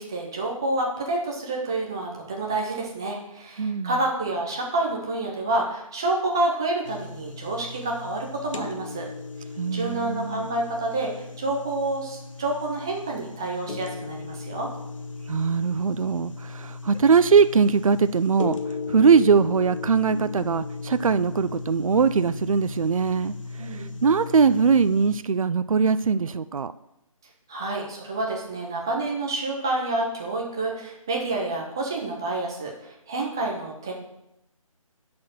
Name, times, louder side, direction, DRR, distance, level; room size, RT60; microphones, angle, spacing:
voice 1, 0.0-9.1 9.7-14.7 23.6-24.0 27.5-33.9, right 2 dB, 5° right, 0.4 m, -28 dB
voice 2, 3.6-3.9 9.6-10.5 15.3-18.6 18.9-23.3 23.7-26.7, right 5 dB, 70° right, 0.4 m, -21 dB
sound 1, 6.9-25.2, left 4 dB, 60° left, 1.0 m, -37 dB
8.6 x 4.3 x 6.4 m
figure-of-eight pair, 155°, 18 cm